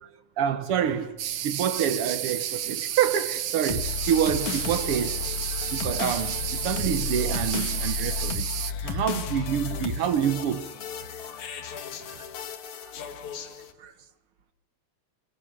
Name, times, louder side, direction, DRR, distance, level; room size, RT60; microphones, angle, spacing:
voice 1, 0.4-1.2 1.4-5.2 5.8-8.5 8.8-10.7, right 9 dB, 65° right, 1.4 m, -27 dB
sound 1, 1.2-8.7, right 10 dB, 85° right, 1.2 m, -31 dB
sound 2, 3.7-13.7, left 7 dB, 60° left, 3.1 m, -33 dB
voice 2, 8.5-9.6 11.7-12.3 12.7-13.0 13.8-14.1, right 4 dB, 45° right, 2.0 m, -54 dB
26.5 x 24.5 x 7.6 m
omnidirectional pair, 4.1 m